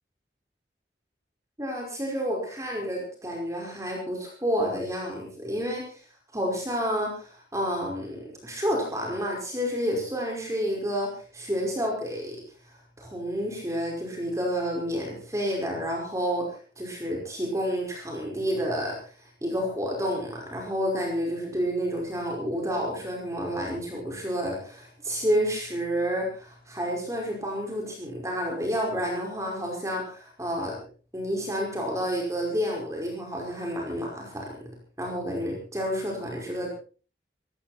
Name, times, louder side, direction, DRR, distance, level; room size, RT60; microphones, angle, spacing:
voice 1, 1.6-6.0 6.3-12.4 13.0-30.8 31.1-34.5 35.0-36.7, equal, 15° right, 0 dB, 5.1 m, -30 dB
18.0 x 16.0 x 4.3 m, 0.39 s
head